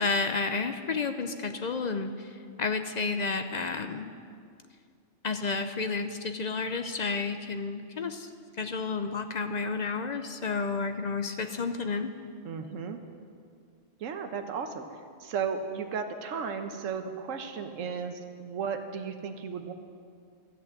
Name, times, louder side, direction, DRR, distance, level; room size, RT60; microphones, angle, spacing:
voice 1, 0.0-4.1 5.2-8.3 8.6-12.1, left 4 dB, 50° left, 8 dB, 0.5 m, -31 dB
voice 2, 12.4-13.0 14.0-14.9 15.2-19.7, right 6 dB, 80° right, 6 dB, 1.3 m, -34 dB
13.0 x 8.2 x 7.5 m, 2.3 s
omnidirectional pair, 1.3 m